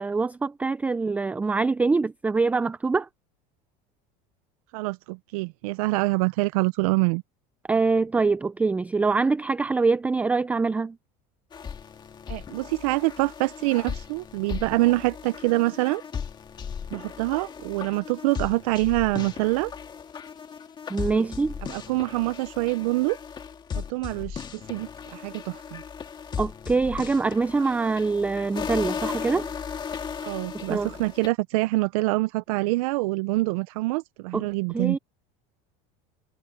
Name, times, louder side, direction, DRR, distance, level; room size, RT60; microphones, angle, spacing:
voice 1, 0.0-3.1 7.7-10.9 20.9-21.5 26.4-29.5 30.7-30.9 34.3-34.4 34.7-35.0, right 4 dB, 10° right, 0.4 m, -24 dB
voice 2, 4.7-7.2 12.3-16.0 16.9-19.7 21.1-21.3 21.7-23.2 23.7-25.8 30.2-35.0, right 22 dB, 85° right, 0.5 m, -25 dB
sound 1, 11.5-31.3, left 7 dB, 25° left, 2.2 m, -36 dB
supercardioid pair, 140°, 18 cm